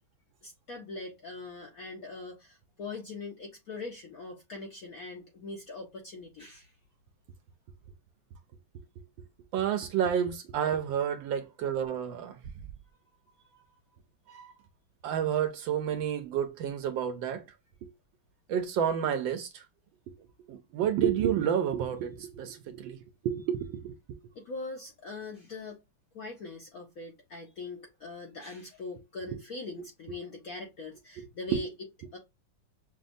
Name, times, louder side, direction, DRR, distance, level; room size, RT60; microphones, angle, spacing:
voice 1, 0.4-6.7 13.5-13.6 24.3-25.8 26.1-31.7 32.1-32.2, left 3 dB, 65° left, 0.9 m, -42 dB
voice 2, 9.5-12.4 14.3-14.5 15.0-17.4 17.8-17.9 18.5-19.6 20.5-24.2 29.3-29.4, right 9 dB, 75° right, 1.2 m, -30 dB
6.1 x 2.2 x 2.6 m
omnidirectional pair, 2.4 m